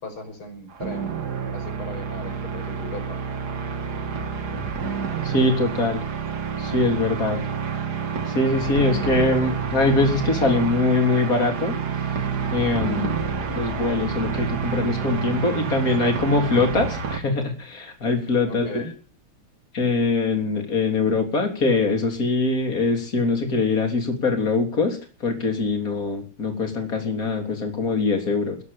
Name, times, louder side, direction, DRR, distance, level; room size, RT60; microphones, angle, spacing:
voice 1, 0.0-1.2 1.5-3.2 18.5-18.9, left 2 dB, 75° left, 5 dB, 6.4 m, -38 dB
sound 1, 0.7-17.2, right 6 dB, 50° right, 2.2 m, -28 dB
voice 2, 5.2-6.1 6.6-7.4 8.3-12.0 12.5-13.2 13.5-18.9 19.7-28.6, left 3 dB, 40° left, 4 dB, 4.0 m, -23 dB
20.5 x 8.1 x 8.6 m, 0.40 s
omnidirectional pair, 2.3 m